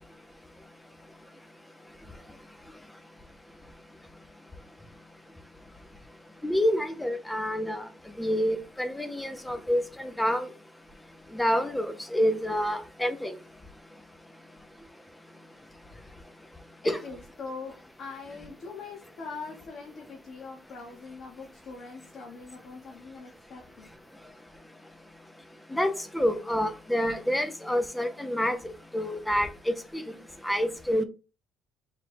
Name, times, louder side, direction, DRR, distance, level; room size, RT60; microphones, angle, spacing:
voice 1, 6.4-7.9 8.2-10.5 11.3-13.4 16.9-17.0 25.7-28.6 28.9-30.0 30.4-31.0, equal, 5° left, 0.5 m, -27 dB
voice 2, 16.8-23.9, left 4 dB, 50° left, 1.1 m, -42 dB
4.1 x 2.3 x 4.3 m
cardioid pair, 130°, 0 cm